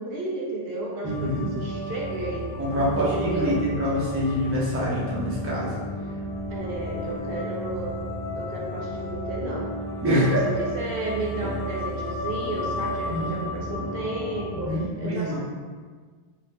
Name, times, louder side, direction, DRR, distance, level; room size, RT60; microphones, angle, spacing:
voice 1, 0.0-2.5 3.0-3.6 6.5-8.0 8.4-9.7 10.1-15.4, right 2 dB, 70° right, -3 dB, 0.8 m, -32 dB
sound 1, 1.0-14.7, left 1 dB, 65° left, 0.8 m, -33 dB
voice 2, 1.0-1.4 2.6-5.7 10.0-10.4 13.0-13.4 14.5-15.4, equal, 15° right, -6 dB, 0.5 m, -25 dB
2.7 x 2.5 x 3.2 m, 1.5 s
omnidirectional pair, 1.1 m